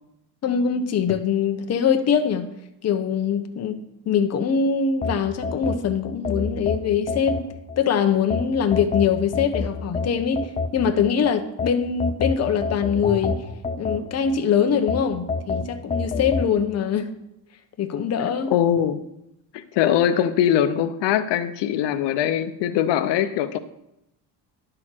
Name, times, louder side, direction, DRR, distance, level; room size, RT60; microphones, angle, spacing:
voice 1, 0.4-2.5 2.8-7.4 7.8-13.4 13.8-17.1 17.8-18.5, left 7 dB, 40° left, 6 dB, 0.8 m, -23 dB
sound 1, 5.0-7.8 8.3-11.1 11.6-14.4 14.9-16.5, left 4 dB, 20° left, 0.5 m, -28 dB
voice 2, 18.5-19.0 19.5-23.6, left 10 dB, 80° left, 11 dB, 0.7 m, -22 dB
11.0 x 6.4 x 4.4 m, 0.84 s
cardioid pair, 160°, 42 cm